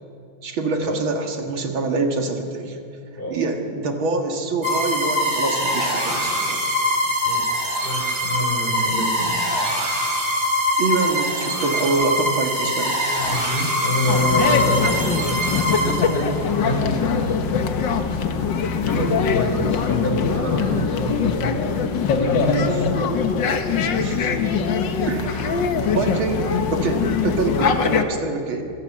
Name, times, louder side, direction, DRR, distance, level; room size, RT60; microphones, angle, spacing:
voice 1, 0.4-2.8 3.3-6.6 10.8-13.0 22.4-22.9 24.0-24.6 25.1-28.6, right 3 dB, 80° right, 3 dB, 2.8 m, -25 dB
sound 1, 4.6-16.5, equal, 30° right, 3.8 m, -23 dB
voice 2, 7.2-9.4 13.2-15.2 15.7-16.3 16.6-17.5 18.8-21.3 22.1-23.0, left 1 dB, 25° left, 1 dB, 4.7 m, -26 dB
sound 2, 14.1-28.0, left 6 dB, 65° left, 1.9 m, -22 dB
27.0 x 16.0 x 7.4 m, 2.5 s
omnidirectional pair, 2.2 m